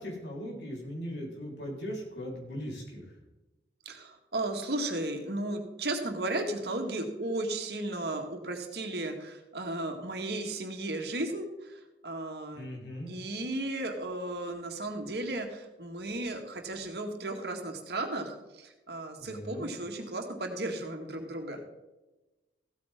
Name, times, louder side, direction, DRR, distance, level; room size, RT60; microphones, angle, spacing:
voice 1, 0.0-3.0 12.5-13.1 19.2-19.7, equal, 80° left, -2 dB, 4.2 m, -39 dB
voice 2, 3.9-12.7 13.1-21.6, right 2 dB, 65° right, 3 dB, 1.9 m, -35 dB
15.5 x 8.8 x 3.7 m, 1.0 s
head